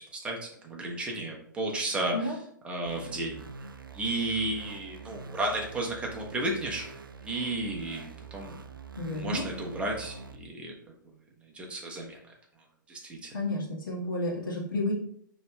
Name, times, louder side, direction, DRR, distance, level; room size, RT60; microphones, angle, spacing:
voice 1, 0.2-2.4 2.6-3.4 3.9-6.8 7.2-8.6 9.1-11.2 11.4-12.2 12.9-13.4, right 2 dB, 10° right, 0 dB, 0.9 m, -33 dB
sound 1, 2.9-10.4, right 4 dB, 90° right, 0.4 m, -45 dB
voice 2, 9.0-9.4 13.3-14.9, left 2 dB, 70° left, -2 dB, 1.4 m, -31 dB
5.3 x 3.1 x 2.2 m, 0.65 s
figure-of-eight pair, 120°, 11 cm